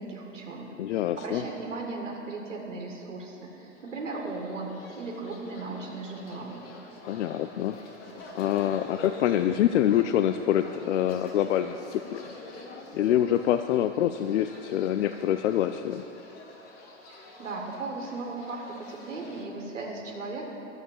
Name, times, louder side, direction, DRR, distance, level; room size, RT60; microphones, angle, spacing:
voice 1, 0.0-6.6 17.1-20.5, right 3 dB, 85° right, -1 dB, 1.8 m, -37 dB
voice 2, 0.8-1.4 7.0-7.8 8.3-12.2 12.9-16.0, left 11 dB, 75° left, 9 dB, 0.5 m, -25 dB
sound 1, 3.6-19.4, left 2 dB, 40° left, 2.3 m, -46 dB
11.5 x 8.0 x 7.4 m, 3.0 s
hypercardioid pair, 95°, 36 cm